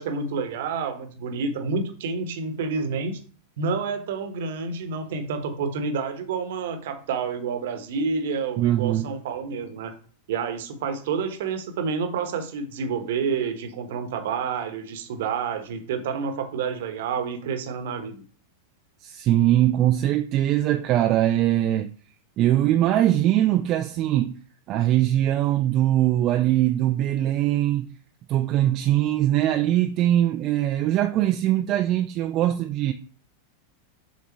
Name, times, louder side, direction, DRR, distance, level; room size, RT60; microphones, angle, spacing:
voice 1, 0.0-3.2 3.6-9.9 10.3-18.2, right 5 dB, 55° right, 1.1 m, -29 dB
voice 2, 8.6-9.1 19.0-21.9 22.4-24.4 24.7-27.9 28.3-32.9, right 13 dB, 35° right, 0.4 m, -21 dB
7.2 x 3.6 x 4.5 m
figure-of-eight pair, 90°, 0 cm